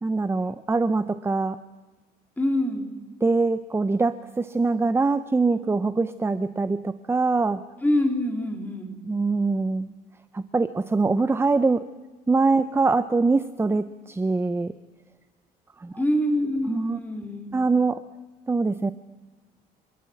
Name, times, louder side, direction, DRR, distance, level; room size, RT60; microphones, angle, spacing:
voice 1, 0.0-1.6 3.2-7.6 9.1-9.9 10.3-11.9 12.3-14.7 15.8-15.9 16.7-17.0 17.5-18.0 18.5-18.9, right 3 dB, 15° right, 13 dB, 0.7 m, -23 dB
voice 2, 2.4-3.0 7.8-9.0 16.0-17.5, left 1 dB, 10° left, 3 dB, 3.9 m, -25 dB
28.0 x 13.0 x 9.7 m, 1.2 s
cardioid pair, 110°, 17 cm